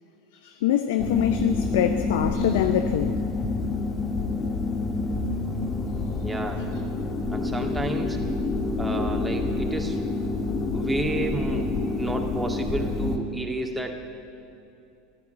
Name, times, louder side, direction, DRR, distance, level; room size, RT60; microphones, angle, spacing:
voice 1, 0.3-3.2, left 11 dB, 70° left, 9 dB, 0.7 m, -25 dB
sound 1, 1.0-13.2, left 3 dB, 30° left, 1.7 m, -27 dB
voice 2, 6.2-6.6 7.3-8.2 8.8-10.0 10.7-11.7 12.0-13.9, right 2 dB, 10° right, 2 dB, 2.0 m, -31 dB
14.5 x 11.5 x 8.4 m, 2.6 s
hypercardioid pair, 80°, 0 cm